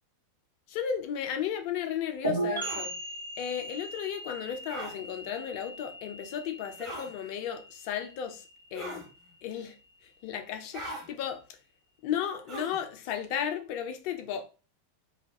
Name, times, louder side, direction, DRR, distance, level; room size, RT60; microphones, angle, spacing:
voice 1, 0.7-2.9 3.4-8.4 8.7-9.1 9.4-9.7 10.2-11.4 12.0-14.4, left 9 dB, 45° left, 0.5 m, -34 dB
sound 1, 2.2-9.8, right 2 dB, 80° right, 1.1 m, -38 dB
sound 2, 2.6-2.9 4.7-4.9 6.8-7.1 8.7-9.1 10.7-11.1 12.5-12.8, right 2 dB, 25° right, 1.2 m, -39 dB
2.4 x 2.2 x 3.5 m
figure-of-eight pair, 90°, 0 cm